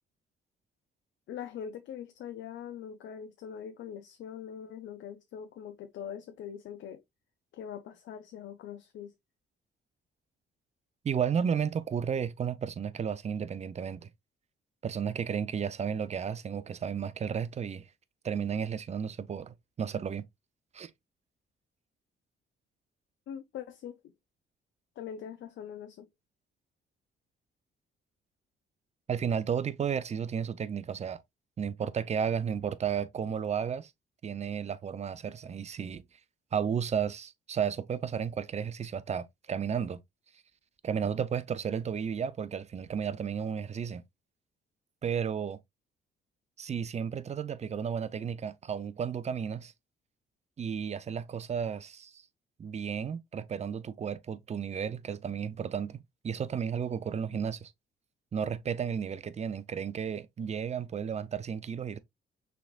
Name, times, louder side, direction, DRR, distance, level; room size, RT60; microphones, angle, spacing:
voice 1, 1.3-7.0 7.5-9.1 23.3-24.0 25.0-26.1, left 8 dB, 75° left, 0.6 m, -42 dB
voice 2, 11.0-14.1 14.8-17.9 18.2-20.2 20.7-20.9 29.1-31.2 31.6-33.9 34.2-36.0 36.5-40.0 40.8-44.0 45.0-45.6 46.6-49.7 50.6-52.2 52.6-56.0 56.2-57.7 58.3-62.0, right 7 dB, 35° right, 0.5 m, -33 dB
5.9 x 3.5 x 2.3 m
cardioid pair, 90°, 20 cm